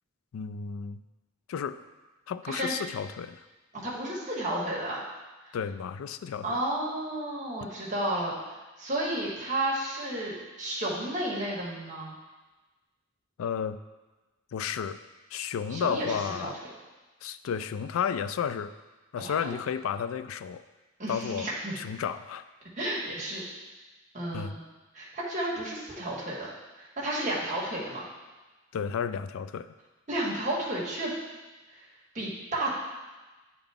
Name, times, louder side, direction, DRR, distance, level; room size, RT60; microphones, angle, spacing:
voice 1, 0.3-1.0 1.5-1.8 2.3-3.4 5.5-6.6 13.4-13.8 14.5-15.0 15.3-16.6 17.2-18.7 19.1-20.6 21.1-21.5 21.8-22.4 24.3-24.6 28.7-29.7, left 7 dB, 85° left, 13 dB, 0.3 m, -32 dB
voice 2, 2.5-2.8 3.7-5.0 6.4-12.1 15.7-16.5 19.2-19.5 21.0-21.7 22.8-23.4 24.1-24.6 24.9-26.5 26.8-28.1 30.1-31.1 32.1-32.8, right 1 dB, 35° right, -5 dB, 1.6 m, -32 dB
9.7 x 3.9 x 3.5 m, 1.2 s
head